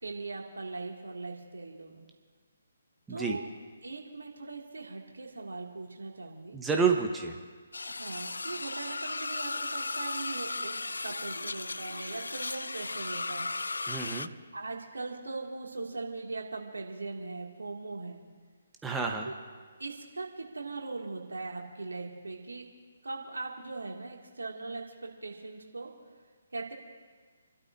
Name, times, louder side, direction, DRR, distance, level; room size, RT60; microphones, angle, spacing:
voice 1, 0.0-2.1 3.1-3.4 3.8-6.8 7.8-13.5 14.5-18.2 19.2-19.4 19.8-22.7 23.0-25.9 26.5-26.7, right 3 dB, 70° right, -1 dB, 2.5 m, -40 dB
voice 2, 6.5-7.4 13.9-14.3 18.8-19.3, right 5 dB, 10° right, 1 dB, 1.1 m, -29 dB
sound 1, 7.7-14.3, left 3 dB, 70° left, 0.4 m, -36 dB
29.5 x 12.5 x 2.8 m, 1.5 s
figure-of-eight pair, 140°, 0 cm